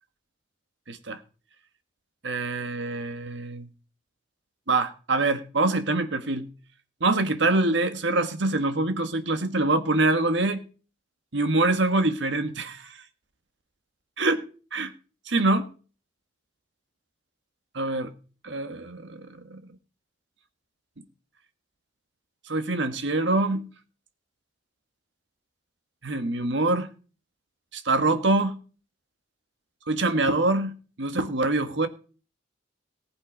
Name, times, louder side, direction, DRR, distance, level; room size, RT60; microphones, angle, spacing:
voice 1, 0.9-1.2 2.2-3.7 4.7-6.5 7.0-10.6 11.3-12.9 14.2-14.4 14.7-14.9 15.3-15.7 17.7-18.1 18.4-19.6 22.5-23.6 26.0-26.9 27.7-28.6 29.9-30.7 31.0-31.9, right 2 dB, 65° right, 9 dB, 1.4 m, -25 dB
18.5 x 7.9 x 5.1 m, 0.39 s
head